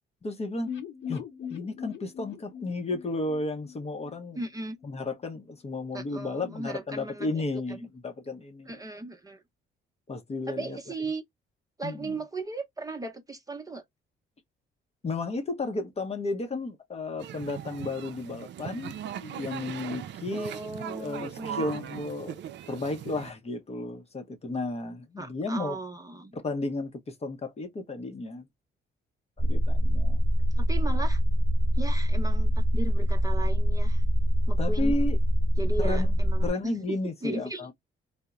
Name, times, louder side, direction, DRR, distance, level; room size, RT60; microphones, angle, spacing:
voice 1, 0.2-0.7 1.1-1.2 1.5-4.4 4.8-8.8 10.1-10.8 11.8-12.2 15.0-20.6 21.0-22.4 22.7-25.8 26.3-28.4 29.4-30.2 34.6-35.2 35.8-36.1 36.4-37.7, left 2 dB, 30° left, 0.7 m, -33 dB
sound 1, 0.6-4.5 4.8-4.9 5.2-5.3, left 8 dB, 75° left, 0.8 m, -40 dB
voice 2, 4.4-4.8 5.9-7.4 7.8-7.9 8.7-9.4 10.5-11.2 11.8-13.8 20.3-21.6 25.2-26.3 30.6-31.2 31.7-34.0 34.5-34.9 35.6-36.5 37.2-37.7, right 2 dB, 15° right, 0.7 m, -37 dB
sound 2, 17.2-23.3, right 10 dB, 65° right, 0.4 m, -39 dB
sound 3, 29.4-36.5, equal, 10° left, 1.2 m, -24 dB
2.8 x 2.0 x 2.3 m
cardioid pair, 90°, 20 cm